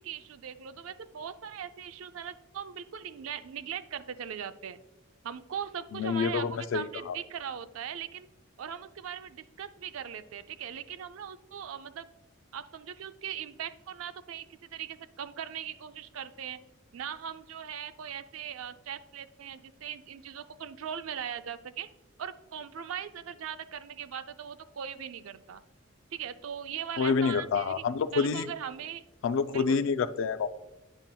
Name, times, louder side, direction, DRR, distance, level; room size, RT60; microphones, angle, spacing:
voice 1, 0.0-4.8 5.2-8.3 8.6-12.1 12.5-16.6 16.9-21.9 22.2-25.6 26.1-27.8 28.1-29.0 29.5-29.8, right 8 dB, 90° right, 12 dB, 0.4 m, -40 dB
voice 2, 5.9-7.2 27.0-28.5 29.2-30.5, left 5 dB, 65° left, 13 dB, 0.3 m, -28 dB
8.9 x 5.5 x 2.2 m, 0.98 s
head